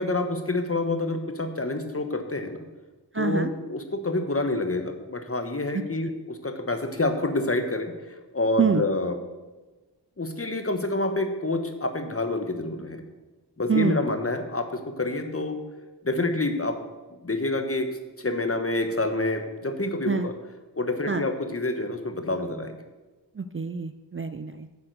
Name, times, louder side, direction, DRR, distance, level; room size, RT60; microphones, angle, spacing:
voice 1, 0.0-2.6 3.1-9.2 10.2-13.0 13.6-15.6 16.0-16.8 17.2-17.9 18.2-20.3 20.8-22.7, left 2 dB, 30° left, 6 dB, 1.3 m, -28 dB
voice 2, 3.1-3.5 8.6-8.8 13.7-14.0 20.1-20.3 21.1-21.2 23.4-24.7, right 5 dB, 30° right, 10 dB, 0.5 m, -25 dB
9.5 x 7.1 x 6.8 m, 1.2 s
wide cardioid pair, 65°, 42 cm